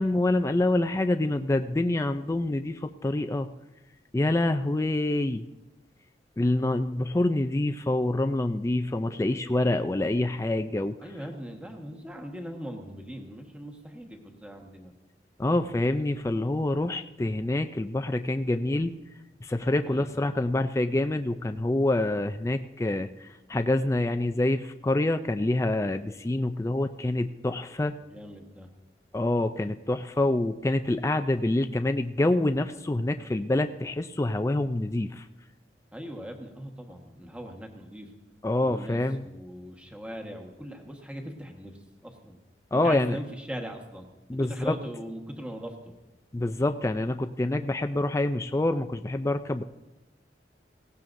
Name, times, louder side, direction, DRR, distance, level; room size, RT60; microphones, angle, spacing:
voice 1, 0.0-3.5 4.1-5.4 6.4-11.0 15.4-18.9 19.4-27.9 29.1-35.3 38.4-39.2 42.7-43.2 44.3-44.8 46.3-49.6, left 1 dB, 15° left, 8 dB, 0.3 m, -26 dB
voice 2, 11.0-14.9 19.8-20.2 28.0-28.7 35.9-38.1 38.6-42.4 42.7-44.0 44.4-45.9, equal, 5° right, 2 dB, 1.3 m, -40 dB
18.0 x 16.5 x 2.6 m, 1.0 s
head